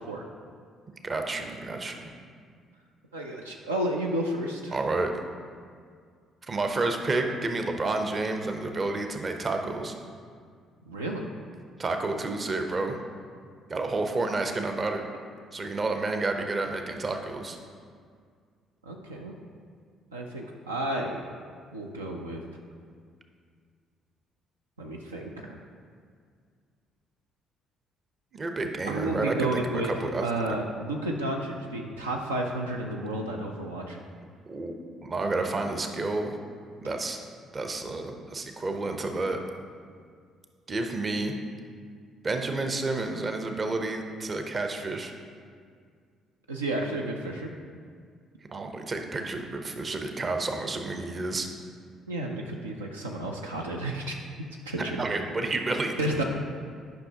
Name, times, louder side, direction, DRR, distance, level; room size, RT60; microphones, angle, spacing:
voice 1, 1.0-2.0 4.7-5.1 6.4-9.9 11.8-13.0 13.7-15.0 15.5-17.6 28.3-30.3 34.4-34.7 35.0-36.4 36.8-37.3 37.5-39.4 40.7-41.3 42.2-45.1 48.5-51.5 55.0-56.2, right 3 dB, 35° right, 5 dB, 0.7 m, -30 dB
voice 2, 3.1-4.8 10.9-11.2 18.8-19.3 20.1-21.2 21.7-22.4 24.8-25.6 28.9-29.9 30.2-34.0 46.5-47.5 52.1-54.2 54.7-55.0 56.0-56.2, right 1 dB, 85° right, 0 dB, 0.4 m, -31 dB
10.5 x 5.6 x 2.8 m, 2.1 s
figure-of-eight pair, 45°, 0 cm